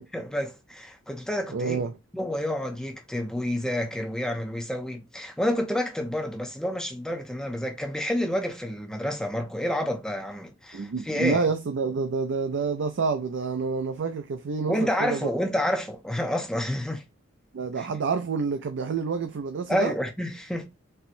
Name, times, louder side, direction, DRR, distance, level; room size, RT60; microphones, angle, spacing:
voice 1, 0.1-1.8 2.1-11.4 14.7-17.0 17.8-17.9 19.7-20.7, left 1 dB, 5° left, 0.5 m, -29 dB
voice 2, 1.5-2.0 10.7-15.3 17.5-19.9, right 5 dB, 60° right, 0.4 m, -28 dB
4.2 x 2.1 x 2.5 m
head